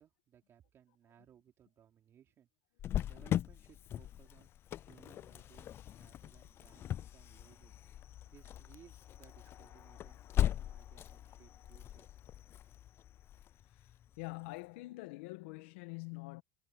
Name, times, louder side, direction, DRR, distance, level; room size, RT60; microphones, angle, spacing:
voice 1, 0.0-2.5 3.0-4.5 4.8-7.7 8.3-12.2, right 9 dB, 40° right, 4.8 m, -63 dB
Cricket, 2.8-14.3, left 11 dB, 35° left, 0.4 m, -39 dB
voice 2, 14.2-16.4, left 24 dB, 75° left, 1.3 m, -45 dB
supercardioid pair, 100°, 7 cm